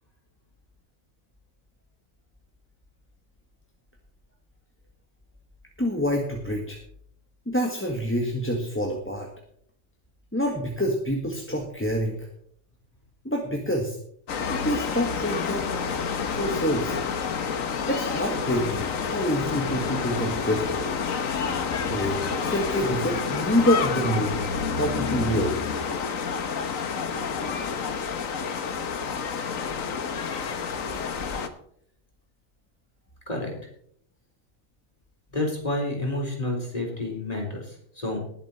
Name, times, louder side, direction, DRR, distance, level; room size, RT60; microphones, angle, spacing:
voice 1, 5.8-6.8 7.5-9.3 10.3-12.3 13.2-14.0 14.5-15.8 16.3-16.9 17.9-20.6 21.9-24.4 24.8-25.5, equal, 10° left, 1 dB, 1.5 m, -27 dB
sound 1, 14.3-31.5, left 6 dB, 80° left, 1.5 m, -29 dB
voice 2, 35.3-38.2, left 1 dB, 30° left, 0 dB, 4.1 m, -29 dB
20.0 x 7.6 x 4.3 m, 0.64 s
omnidirectional pair, 1.4 m